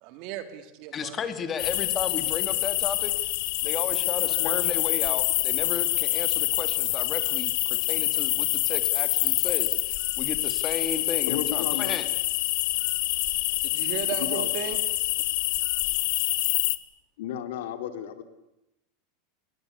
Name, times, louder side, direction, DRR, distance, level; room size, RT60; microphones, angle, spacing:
voice 1, 0.0-1.3 13.6-14.8, right 11 dB, 45° right, 10 dB, 3.1 m, -35 dB
voice 2, 0.9-3.1 3.6-7.5 7.9-12.1, left 6 dB, 20° left, 10 dB, 2.5 m, -34 dB
sound 1, 1.6-16.8, left 20 dB, 60° left, 1.5 m, -26 dB
voice 3, 4.2-4.6 11.3-12.0 14.2-14.5 17.2-18.2, left 10 dB, 75° left, 9 dB, 3.2 m, -33 dB
26.5 x 23.0 x 8.3 m, 0.89 s
supercardioid pair, 165°, 0 cm